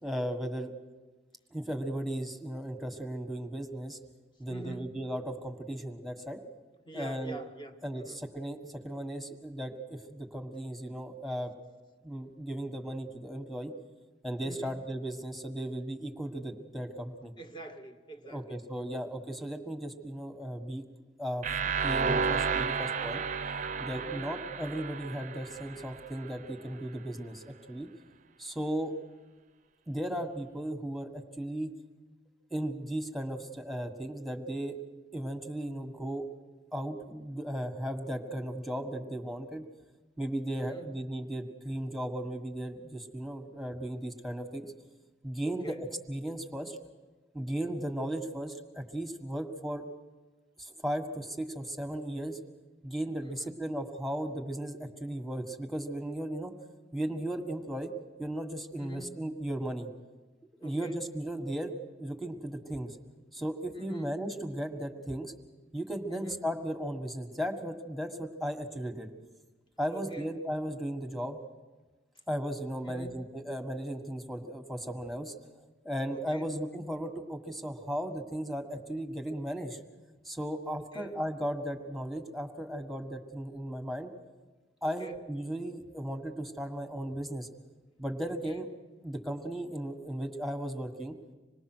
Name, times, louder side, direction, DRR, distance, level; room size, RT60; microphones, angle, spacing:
voice 1, 0.0-0.7 1.5-4.0 4.4-6.4 6.9-7.4 7.8-11.5 12.0-13.7 14.2-17.3 18.2-20.8 21.2-21.5 21.8-23.2 23.8-27.9 28.4-28.9 29.9-31.7 32.5-34.8 35.1-36.3 36.7-39.6 40.2-44.7 45.2-46.8 47.3-49.8 50.6-52.4 52.8-56.5 56.9-57.9 58.2-59.9 60.6-61.7 62.0-63.0 63.3-65.3 65.7-69.1 69.8-71.4 72.3-75.3 75.8-79.8 80.2-84.1 84.8-87.5 88.0-88.7 89.0-91.2, right 1 dB, ahead, 5 dB, 1.6 m, -36 dB
voice 2, 4.5-4.9 6.8-8.2 14.4-14.8 17.4-19.0 23.9-24.4 40.6-41.0 45.4-45.8 53.2-53.6 58.8-59.2 60.6-61.0 63.7-64.2 66.1-66.5 69.9-70.4 72.8-73.3 76.1-76.6 80.7-81.2 84.8-85.2 88.2-88.7, right 2 dB, 25° left, 4 dB, 1.7 m, -46 dB
sound 1, 21.4-26.3, right 5 dB, 45° right, 0.7 m, -32 dB
26.0 x 20.5 x 6.2 m, 1.3 s
head